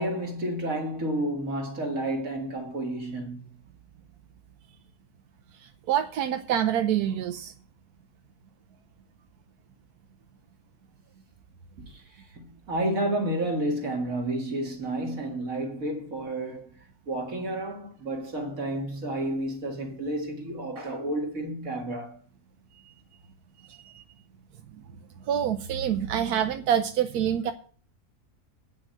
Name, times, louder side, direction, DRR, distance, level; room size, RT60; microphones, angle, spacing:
voice 1, 0.0-3.5 11.8-12.0 12.3-16.7 17.1-22.2, right 1 dB, 65° right, 2.3 m, -31 dB
voice 2, 5.5-7.5 23.7-24.0 25.3-27.5, right 9 dB, 90° right, 1.2 m, -26 dB
8.9 x 6.2 x 7.6 m
omnidirectional pair, 1.6 m